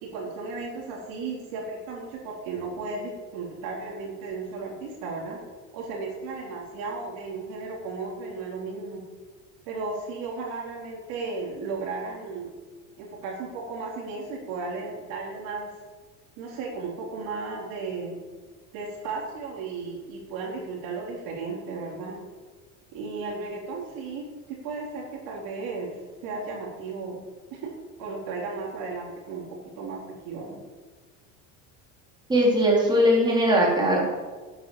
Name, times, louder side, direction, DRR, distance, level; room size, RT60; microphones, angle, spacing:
voice 1, 0.0-5.4 5.7-9.0 9.7-12.5 13.0-15.7 16.4-18.2 18.7-22.2 22.9-25.9 26.2-27.2 27.5-27.7 28.0-30.6, right 4 dB, 70° right, -1 dB, 3.7 m, -35 dB
voice 2, 32.3-34.1, equal, 10° right, -4 dB, 4.2 m, -20 dB
10.0 x 9.1 x 7.3 m, 1.4 s
cardioid pair, 130°, 36 cm